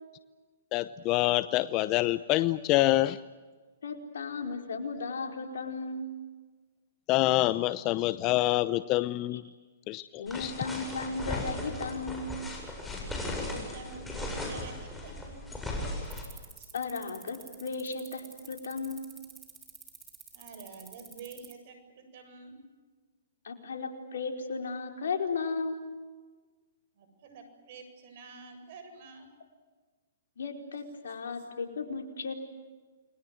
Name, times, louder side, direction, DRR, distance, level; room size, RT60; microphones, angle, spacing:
voice 1, 0.7-3.2 7.1-9.4 9.9-10.5, left 17 dB, 35° left, 15 dB, 0.8 m, -26 dB
voice 2, 3.8-6.1 9.3-9.4 10.2-12.5 16.7-19.1 23.4-25.9 30.4-32.3, left 4 dB, 75° left, 4 dB, 4.8 m, -35 dB
sound 1, 10.3-16.2, left 2 dB, 5° left, 7.7 m, -37 dB
voice 3, 13.4-15.6 16.6-16.7 20.3-22.6 26.9-29.3, right 4 dB, 55° right, 7 dB, 7.8 m, -48 dB
sound 2, 16.0-21.5, right 7 dB, 15° right, 5.0 m, -49 dB
30.0 x 22.0 x 7.9 m, 1.4 s
hypercardioid pair, 130°, 0 cm